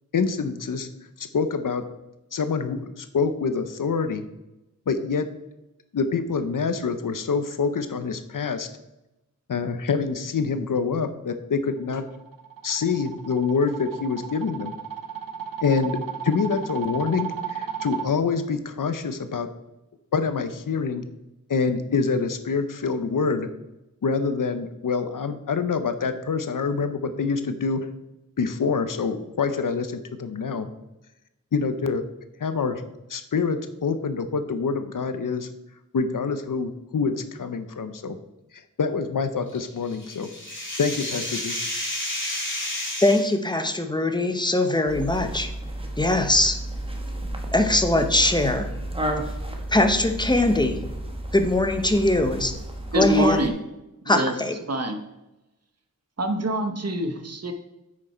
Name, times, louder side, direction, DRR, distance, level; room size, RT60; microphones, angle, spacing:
voice 1, 0.1-0.9 1.2-1.8 2.3-4.2 4.9-5.3 5.9-8.7 9.5-12.0 12.6-14.7 15.6-16.0 16.2-19.5 20.1-21.0 21.5-23.5 24.0-27.9 28.4-30.7 31.5-32.0 32.4-32.8 33.1-35.5 35.9-38.2 38.8-40.3 40.8-41.5, left 5 dB, 80° left, 10 dB, 0.8 m, -26 dB
sound 1, 11.9-18.1, right 7 dB, 90° right, 0.8 m, -34 dB
sound 2, 39.5-43.3, left 1 dB, 35° left, 2.8 m, -31 dB
voice 2, 43.0-45.5 46.0-46.6 47.5-48.7 49.7-50.8 51.3-52.5 52.9-53.4 54.1-54.6, left 2 dB, 15° left, 7 dB, 1.0 m, -21 dB
sound 3, 44.9-53.5, right 1 dB, 15° right, 1.3 m, -32 dB
voice 3, 52.9-53.5 54.0-54.3 54.7-55.0 56.2-57.5, equal, 50° right, 7 dB, 1.2 m, -25 dB
9.1 x 6.3 x 4.3 m, 0.96 s
wide cardioid pair, 75°, 32 cm